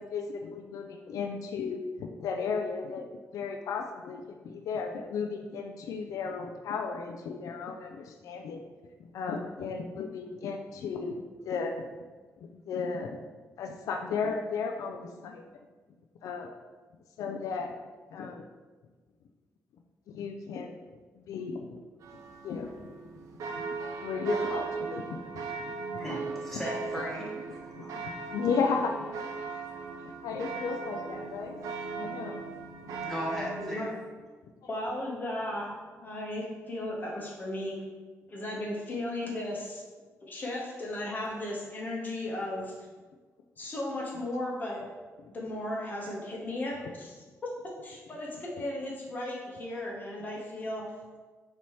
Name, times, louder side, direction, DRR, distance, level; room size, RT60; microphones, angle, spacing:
voice 1, 0.0-3.1 3.3-8.6 9.0-11.7 12.4-13.2 13.6-15.4 16.2-16.5 17.2-17.7 18.1-18.5 20.1-20.8 21.2-21.8 22.4-23.2 24.0-26.0 27.8-29.1 30.2-31.6 31.9-32.4, left 5 dB, 85° left, 3 dB, 0.4 m, -34 dB
sound 1, 22.0-33.8, right 4 dB, 75° right, 0.5 m, -38 dB
voice 2, 26.0-27.9 33.0-33.9, equal, 5° left, -5 dB, 1.1 m, -37 dB
voice 3, 34.7-35.7 35.9-37.8 38.3-39.8 40.2-42.7 43.6-44.8 45.3-47.1 47.8-50.9, left 1 dB, 30° left, -3 dB, 1.0 m, -35 dB
5.3 x 2.9 x 3.1 m, 1.3 s
cardioid pair, 125°, 6 cm